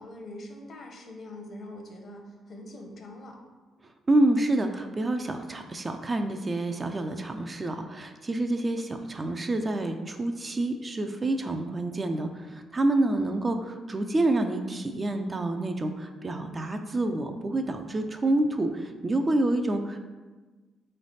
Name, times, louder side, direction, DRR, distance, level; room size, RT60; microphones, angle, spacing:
voice 1, 0.0-3.4 13.1-13.4, left 1 dB, 50° left, 2 dB, 0.8 m, -43 dB
voice 2, 4.1-20.0, right 2 dB, 25° right, 6 dB, 0.3 m, -28 dB
3.9 x 3.2 x 4.1 m, 1.3 s
cardioid pair, 90°, 0 cm